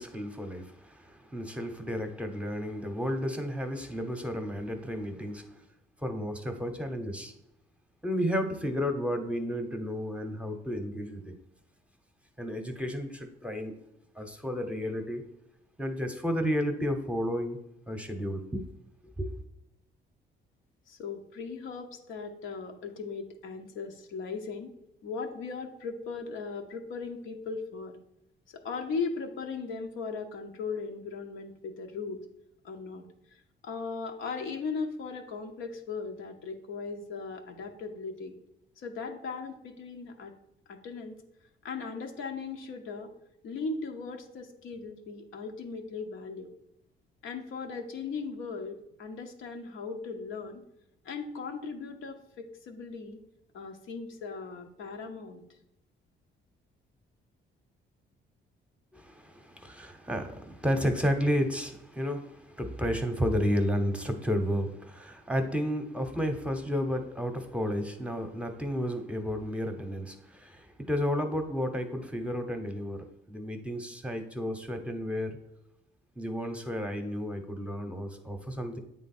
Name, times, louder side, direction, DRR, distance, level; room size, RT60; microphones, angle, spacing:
voice 1, 0.0-5.5 6.0-7.3 8.0-11.4 12.4-13.7 14.2-15.3 15.8-17.6 17.9-18.6 19.2-19.3 58.9-75.4 76.2-78.8, equal, 5° right, 5 dB, 0.9 m, -32 dB
voice 2, 20.9-24.7 25.0-28.0 28.5-32.2 32.6-33.0 33.6-38.3 38.8-40.3 40.7-41.2 41.6-43.1 43.4-46.5 47.2-50.6 51.0-53.2 53.5-55.4, left 4 dB, 80° left, 3 dB, 1.0 m, -38 dB
8.3 x 3.7 x 4.3 m, 0.84 s
cardioid pair, 90°, 20 cm